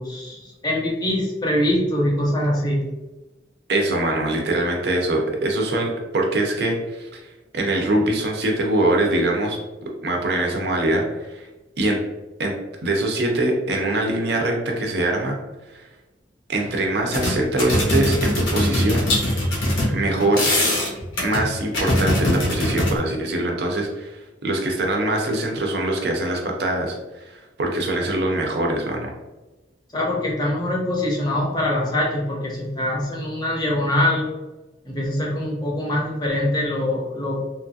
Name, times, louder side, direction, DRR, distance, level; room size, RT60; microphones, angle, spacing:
voice 1, 0.0-2.9 29.9-34.3 34.9-37.4, left 1 dB, 20° left, -4 dB, 0.6 m, -23 dB
voice 2, 3.7-7.2 7.5-9.6 10.0-11.5 11.8-12.0 12.4-12.5 12.8-15.4 15.7-15.8 16.5-19.1 19.9-20.4 21.2-29.1, right 1 dB, 60° right, 1 dB, 0.5 m, -23 dB
sound 1, 16.6-16.7 17.0-23.0, left 1 dB, 85° left, 0.9 m, -22 dB
2.9 x 2.3 x 2.6 m, 1.1 s
head